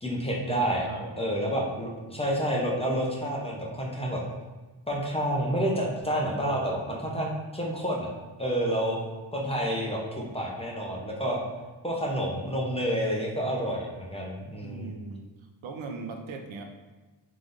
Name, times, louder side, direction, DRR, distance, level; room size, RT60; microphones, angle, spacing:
voice 1, 0.0-0.9 1.2-4.2 4.9-8.1 8.4-9.0 9.3-11.4 11.8-14.9, equal, 15° left, -3 dB, 0.5 m, -29 dB
voice 2, 0.8-1.7 14.6-15.3 15.6-16.6, right 4 dB, 75° right, 4 dB, 0.7 m, -40 dB
3.8 x 3.3 x 3.8 m, 1.2 s
wide cardioid pair, 165°, 48 cm